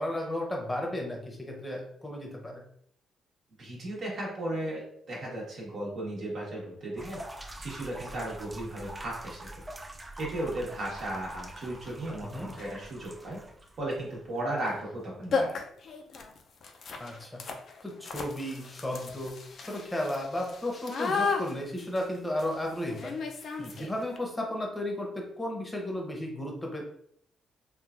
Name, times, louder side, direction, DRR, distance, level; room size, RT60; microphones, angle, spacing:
voice 1, 0.0-2.6 12.2-12.5 17.0-17.4 17.8-19.3 19.7-23.2 23.7-26.9, left 1 dB, 10° left, 0 dB, 0.8 m, -34 dB
voice 2, 3.6-7.2 7.6-9.5 10.2-13.4 13.8-15.6 23.6-23.9, right 1 dB, 60° right, -4 dB, 1.0 m, -35 dB
sound 1, 7.0-14.5, right 1 dB, 15° right, 0.3 m, -45 dB
sound 2, 11.8-11.9 12.5-12.8 14.6-14.7 15.0-15.1 15.3-24.2, left 4 dB, 55° left, 0.4 m, -35 dB
3.0 x 2.3 x 2.4 m, 0.67 s
cardioid pair, 90°, 0 cm